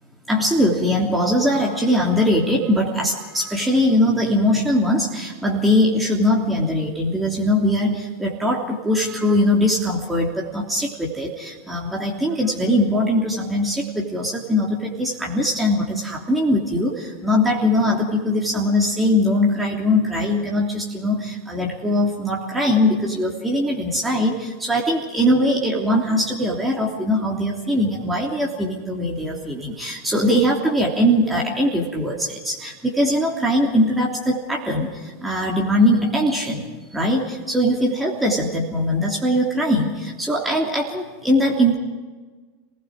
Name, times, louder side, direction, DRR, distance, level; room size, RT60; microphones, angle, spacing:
voice 1, 0.3-36.7 36.9-41.8, left 1 dB, 10° right, -2 dB, 3.1 m, -21 dB
28.5 x 19.5 x 4.9 m, 1.4 s
figure-of-eight pair, 85°, 0 cm